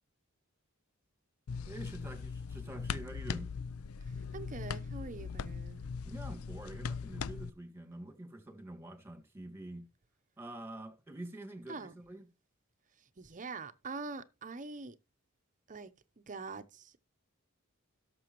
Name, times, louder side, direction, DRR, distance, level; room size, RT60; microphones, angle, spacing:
sound 1, 1.5-7.5, left 5 dB, 90° left, 0.5 m, -40 dB
voice 1, 1.7-3.5 6.1-9.9 10.4-12.3, right 1 dB, 10° right, 1.8 m, -47 dB
voice 2, 4.3-5.9 11.7-11.9 13.2-14.9 15.7-17.0, right 4 dB, 35° right, 0.7 m, -44 dB
17.0 x 6.8 x 3.0 m
head